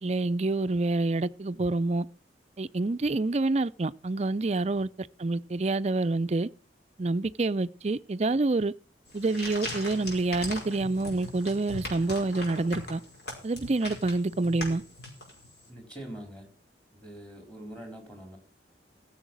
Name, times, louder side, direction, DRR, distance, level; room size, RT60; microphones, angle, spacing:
voice 1, 0.0-2.1 2.6-4.9 5.2-6.5 7.0-8.7 9.1-13.0 13.4-14.8, right 2 dB, 40° right, 0.5 m, -27 dB
sound 1, 9.1-15.6, left 1 dB, 65° left, 5.3 m, -40 dB
voice 2, 15.7-16.5 17.0-18.4, right 1 dB, 5° left, 4.2 m, -43 dB
15.5 x 7.2 x 6.2 m
head